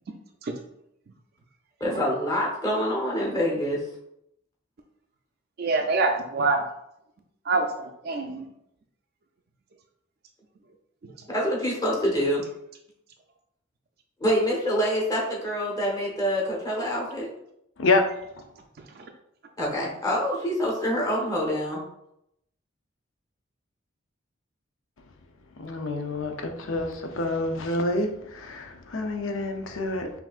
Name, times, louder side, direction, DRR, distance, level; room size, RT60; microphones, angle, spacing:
voice 1, 1.8-3.8 11.3-12.4 14.2-17.3 19.6-21.8, equal, 20° left, 1.0 m, -26 dB
voice 2, 5.6-6.6 7.5-8.4, right 3 dB, 50° right, 0.4 m, -25 dB
voice 3, 17.8-18.1 25.6-30.2, left 2 dB, 75° left, 0.6 m, -27 dB
5.6 x 2.6 x 2.4 m
head